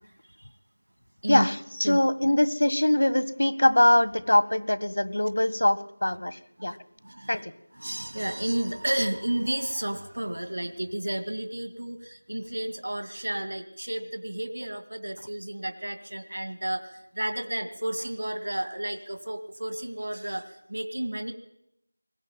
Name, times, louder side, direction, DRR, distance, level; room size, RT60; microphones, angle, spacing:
voice 1, 1.3-6.3 6.6-6.8 7.3-7.5, left 1 dB, 75° left, 14 dB, 1.7 m, -22 dB
voice 2, 7.0-7.4 7.7-21.3, right 1 dB, 80° right, 8 dB, 2.3 m, -32 dB
22.0 x 19.5 x 9.1 m, 0.84 s
figure-of-eight pair, 175°, 0 cm